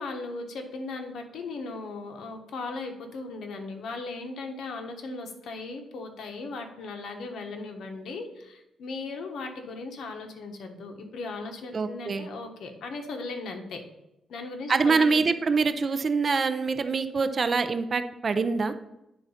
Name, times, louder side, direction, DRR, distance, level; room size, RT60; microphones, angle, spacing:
voice 1, 0.0-13.8 14.3-15.2, left 3 dB, 70° left, 4 dB, 1.2 m, -37 dB
voice 2, 11.7-12.3 14.7-18.7, right 4 dB, 35° right, 10 dB, 0.5 m, -25 dB
9.3 x 3.9 x 5.6 m, 0.88 s
wide cardioid pair, 160°, 0 cm